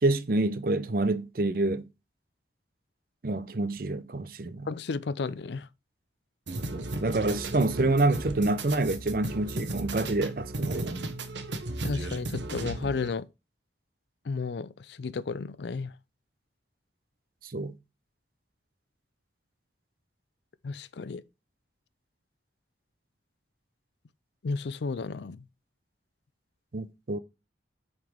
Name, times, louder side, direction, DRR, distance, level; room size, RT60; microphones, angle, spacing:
voice 1, 0.0-1.8 3.2-4.7 6.7-11.1 17.5-17.7 26.7-27.2, right 2 dB, 50° right, 0.6 m, -27 dB
voice 2, 4.7-5.7 11.8-13.3 14.3-15.9 20.6-21.2 24.4-25.4, left 4 dB, 75° left, 0.5 m, -33 dB
sound 1, 6.5-13.1, right 2 dB, 90° right, 1.1 m, -35 dB
7.4 x 4.2 x 3.4 m
head